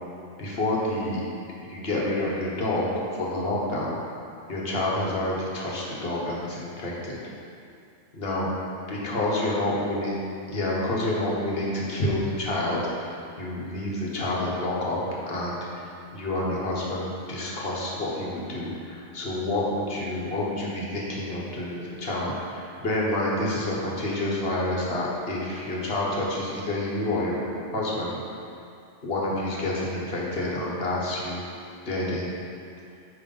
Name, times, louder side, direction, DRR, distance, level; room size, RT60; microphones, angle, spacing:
voice 1, 0.4-1.2 1.6-4.0 4.5-7.2 8.1-8.5 8.9-10.2 10.5-15.0 15.3-15.7 16.1-27.5 27.7-28.2 29.0-31.4 31.8-32.4, left 1 dB, 55° left, -4 dB, 1.4 m, -28 dB
9.0 x 3.4 x 5.4 m, 2.6 s
omnidirectional pair, 1.2 m